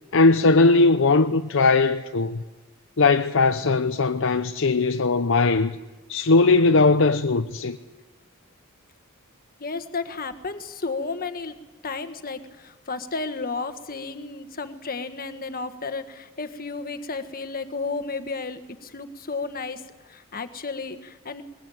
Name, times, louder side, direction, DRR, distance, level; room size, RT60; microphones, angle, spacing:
voice 1, 0.1-2.4 3.0-5.8 6.1-7.8, left 3 dB, 65° left, 0.7 m, -19 dB
voice 2, 9.6-11.5 11.8-19.8 20.1-21.4, left 4 dB, 45° left, 1.5 m, -32 dB
21.5 x 21.0 x 9.2 m
head